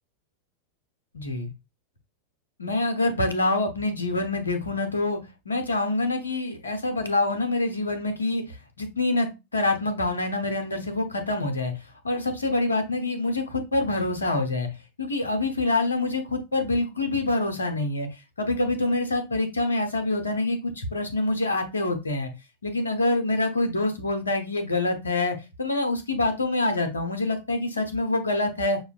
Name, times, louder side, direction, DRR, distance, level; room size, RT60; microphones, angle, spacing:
voice 1, 1.1-1.5 2.6-5.2 5.4-11.7 12.0-14.7 15.0-22.3 22.6-28.8, left 2 dB, 75° left, 7 dB, 0.8 m, -26 dB
6.4 x 2.4 x 2.4 m, 0.25 s
figure-of-eight pair, 90°, 0 cm